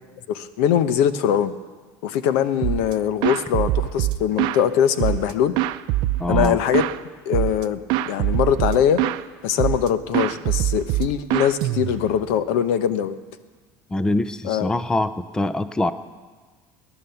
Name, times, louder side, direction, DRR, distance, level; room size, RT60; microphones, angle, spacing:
voice 1, 0.3-1.5 2.0-5.5 6.3-6.8 7.3-7.8 8.1-9.0 9.4-13.2 14.4-14.7, left 9 dB, 90° left, 13 dB, 0.9 m, -22 dB
sound 1, 2.6-2.9 3.2-4.6 5.0-7.0 7.3-7.6 7.9-9.2 9.6-9.9 10.1-12.2, right 15 dB, 60° right, 0.6 m, -23 dB
voice 2, 6.2-6.6 13.9-15.9, left 2 dB, 10° left, 13 dB, 0.5 m, -24 dB
19.0 x 11.0 x 7.0 m, 1.4 s
cardioid pair, 155°, 8 cm